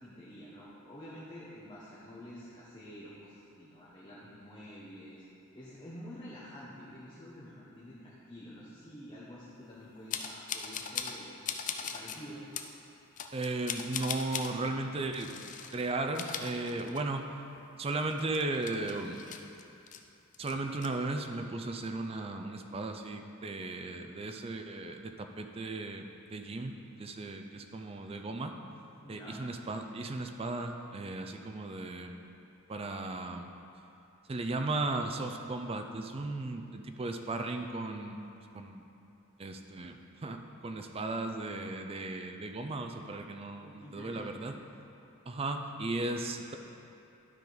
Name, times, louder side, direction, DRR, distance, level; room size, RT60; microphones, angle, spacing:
voice 1, 0.0-5.2 5.5-11.4 11.8-12.4 29.0-29.4 43.6-44.4, equal, 20° left, -8 dB, 1.0 m, -48 dB
sound 1, 10.1-11.2 11.4-12.2 12.5-12.7 13.2-14.5 15.1-15.7 16.0-17.2 17.6-17.7 18.1-20.0 20.3-20.9, left 7 dB, 35° left, 0.4 m, -39 dB
voice 2, 13.3-15.3 15.7-17.3 17.8-19.2 20.4-28.5 29.1-32.3 32.7-33.5 34.3-38.2 38.5-38.9 39.4-44.6 45.3-46.6, right 2 dB, 25° right, 5 dB, 0.4 m, -36 dB
12.0 x 5.1 x 3.9 m, 2.8 s
head